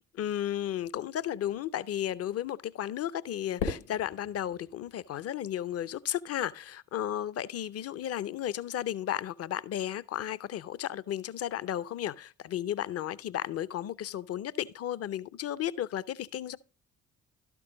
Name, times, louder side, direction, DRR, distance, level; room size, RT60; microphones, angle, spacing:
voice 1, 0.2-16.6, left 11 dB, 35° left, 0.6 m, -34 dB
Fireworks, 3.6-5.9, left 5 dB, 75° left, 3.4 m, -39 dB
12.0 x 6.0 x 3.8 m
figure-of-eight pair, 45°, 41 cm